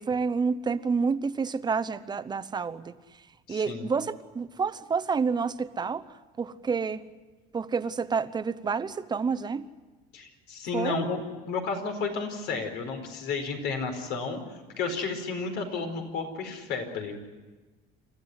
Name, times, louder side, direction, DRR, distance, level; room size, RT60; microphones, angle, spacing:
voice 1, 0.0-2.9 3.5-6.1 6.4-7.0 7.5-9.7 10.7-11.1, right 5 dB, 25° right, 13 dB, 0.9 m, -29 dB
voice 2, 3.5-3.9 10.1-14.4 14.8-17.3, left 4 dB, 70° left, 5 dB, 4.6 m, -32 dB
28.5 x 14.5 x 9.7 m, 1.3 s
cardioid pair, 125°, 18 cm